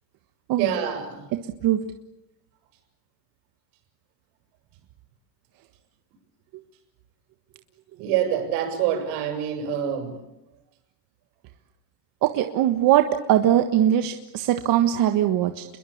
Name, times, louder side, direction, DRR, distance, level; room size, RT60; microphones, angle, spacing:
voice 1, 0.6-1.3 8.0-10.1, right 9 dB, 75° right, 7 dB, 7.3 m, -26 dB
voice 2, 1.3-1.8 12.2-15.6, right 11 dB, 50° right, 7 dB, 1.5 m, -21 dB
29.5 x 22.0 x 8.7 m, 0.89 s
cardioid pair, 155°, 43 cm